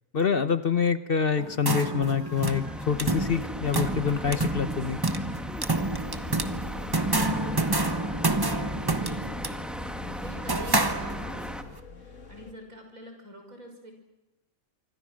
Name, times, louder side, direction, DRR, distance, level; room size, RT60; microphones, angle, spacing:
voice 1, 0.1-5.0, left 6 dB, 45° left, 11 dB, 1.1 m, -26 dB
sound 1, 1.4-11.5, right 2 dB, 20° right, 1.1 m, -29 dB
sound 2, 2.3-11.6, equal, ahead, 1.6 m, -37 dB
sound 3, 5.9-12.5, left 2 dB, 65° left, 2.3 m, -47 dB
voice 2, 6.2-9.3 10.0-11.5 12.0-13.9, equal, 85° right, 4 dB, 6.3 m, -45 dB
26.5 x 24.5 x 6.3 m, 0.99 s
omnidirectional pair, 1.4 m